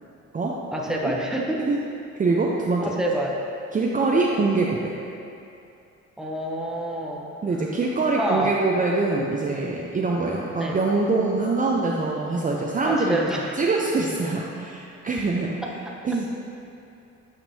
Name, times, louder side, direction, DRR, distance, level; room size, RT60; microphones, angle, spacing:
voice 1, 0.7-1.6 2.8-3.4 6.2-7.3 8.1-8.6 10.6-10.8 12.8-13.6 15.6-16.0, right 1 dB, ahead, -2 dB, 0.8 m, -27 dB
voice 2, 2.2-2.9 3.7-4.9 7.4-15.6 16.0-16.2, right 3 dB, 25° right, -2 dB, 0.5 m, -24 dB
8.8 x 5.2 x 2.7 m, 2.7 s
cardioid pair, 90°, 30 cm